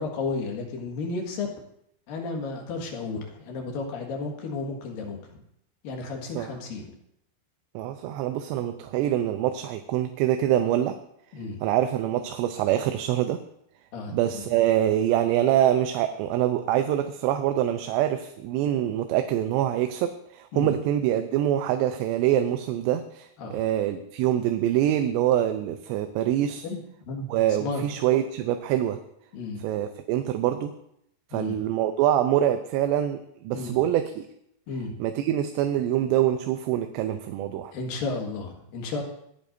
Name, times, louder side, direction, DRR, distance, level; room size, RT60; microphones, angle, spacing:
voice 1, 0.0-1.5 2.1-5.4 5.8-7.0 11.3-11.6 13.9-14.4 20.5-20.7 23.4-23.6 26.6-27.3 27.6-27.9 29.3-29.6 31.3-31.6 33.5-33.8 34.7-34.9 37.7-39.0, left 3 dB, 60° left, 1 dB, 3.2 m, -33 dB
voice 2, 7.7-11.0 11.6-13.4 14.1-26.7 27.3-29.0 29.6-30.8 31.3-34.3 35.0-37.7, right 11 dB, 85° right, 7 dB, 2.9 m, -25 dB
26.0 x 9.6 x 2.7 m, 0.74 s
omnidirectional pair, 4.9 m